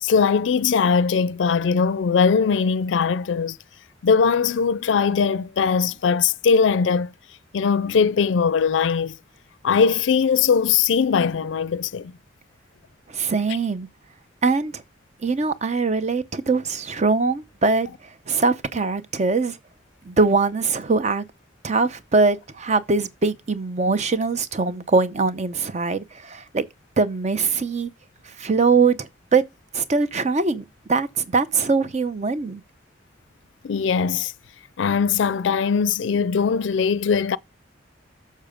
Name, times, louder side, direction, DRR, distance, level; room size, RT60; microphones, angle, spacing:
voice 1, 0.0-3.6 4.0-7.1 7.5-9.2 9.6-12.1 33.6-34.3 34.8-37.4, left 6 dB, 80° left, 0.4 m, -20 dB
voice 2, 13.1-13.9 14.4-14.8 15.2-17.9 18.3-19.6 20.1-21.2 21.6-26.6 27.0-27.9 28.4-29.4 29.7-32.6, right 4 dB, 40° right, 0.6 m, -22 dB
6.9 x 6.6 x 5.1 m
head